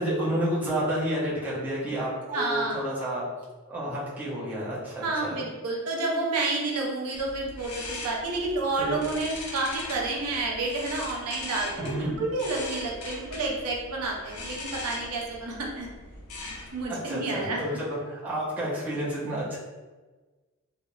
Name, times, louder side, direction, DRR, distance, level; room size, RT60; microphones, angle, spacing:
voice 1, 0.0-3.3 3.7-5.4 8.8-9.0 11.8-12.1 16.9-19.6, equal, 10° right, -9 dB, 0.6 m, -30 dB
voice 2, 2.3-2.8 5.0-15.9 16.7-17.6, right 3 dB, 70° right, -1 dB, 0.5 m, -30 dB
sound 1, 7.1-16.8, left 2 dB, 80° left, 0.5 m, -40 dB
2.3 x 2.0 x 2.9 m, 1.3 s
head